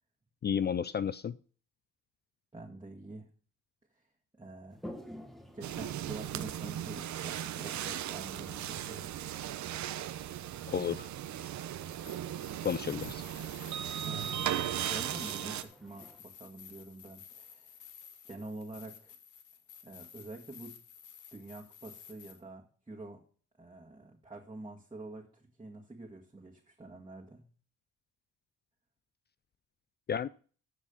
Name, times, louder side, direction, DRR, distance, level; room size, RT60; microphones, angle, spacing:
voice 1, 0.4-1.4 10.7-11.1 12.6-13.2 30.1-30.3, left 8 dB, 35° left, 0.4 m, -32 dB
voice 2, 2.5-3.3 3.9-4.1 4.3-4.8 5.5-9.1 14.0-14.5 14.9-17.8 18.2-19.2 19.8-20.8 21.3-23.2 23.6-27.5, right 2 dB, 15° right, 2.0 m, -47 dB
Toilet flush, 4.7-16.2, equal, ahead, 1.4 m, -54 dB
sound 1, 5.6-15.6, right 11 dB, 70° right, 0.9 m, -37 dB
sound 2, 11.9-22.4, left 8 dB, 75° left, 1.7 m, -53 dB
14.0 x 4.9 x 5.6 m
cardioid pair, 90°, 30 cm